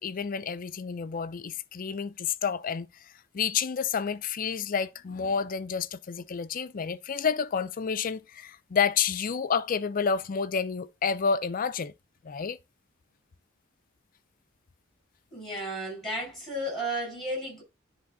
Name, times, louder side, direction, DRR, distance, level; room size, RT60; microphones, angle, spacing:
voice 1, 0.0-2.9 3.3-11.9 12.2-12.6, left 6 dB, 45° left, 0.4 m, -29 dB
voice 2, 15.3-17.6, right 1 dB, ahead, 4.9 m, -33 dB
10.0 x 3.4 x 3.9 m
head